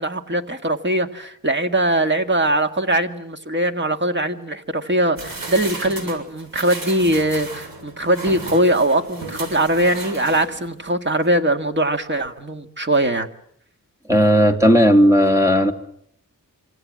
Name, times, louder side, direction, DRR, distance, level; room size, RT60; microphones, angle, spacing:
voice 1, 0.0-13.3, right 1 dB, 35° right, 6 dB, 1.9 m, -21 dB
sound 1, 5.2-10.8 11.2-11.3, right 3 dB, 90° right, 6.9 m, -34 dB
voice 2, 14.1-15.7, equal, 10° right, 5 dB, 2.4 m, -14 dB
27.0 x 26.5 x 7.6 m, 0.70 s
wide cardioid pair, 175°, 34 cm